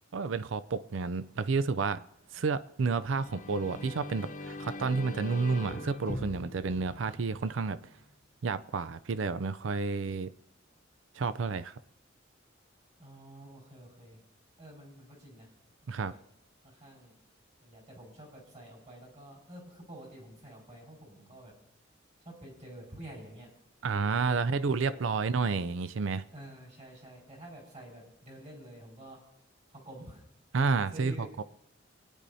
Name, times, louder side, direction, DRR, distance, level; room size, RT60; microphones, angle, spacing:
voice 1, 0.1-2.0 2.3-7.8 8.4-10.3 11.2-11.7 15.9-16.1 23.8-26.2 30.5-31.4, right 4 dB, 75° right, 14 dB, 0.5 m, -30 dB
sound 1, 3.0-7.7, left 1 dB, 40° left, 0.9 m, -42 dB
voice 2, 13.0-14.2 14.6-15.5 15.8-16.2 16.6-17.1 17.6-21.5 22.2-23.5 24.1-25.0 26.3-29.2 29.7-30.2 30.5-31.3, right 1 dB, 35° right, -2 dB, 5.0 m, -49 dB
26.0 x 10.0 x 2.7 m, 0.80 s
head